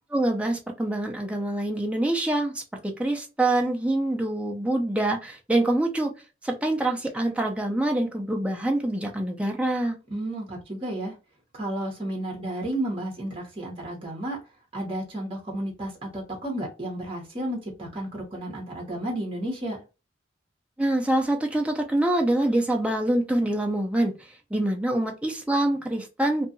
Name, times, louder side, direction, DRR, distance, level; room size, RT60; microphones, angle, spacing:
voice 1, 0.1-6.1 6.4-10.0 20.8-24.1 24.5-26.5, right 1 dB, 5° right, 0.4 m, -25 dB
voice 2, 10.1-11.2 11.5-14.4 14.7-19.8, right 1 dB, 30° right, 0.9 m, -32 dB
2.7 x 2.3 x 2.5 m
head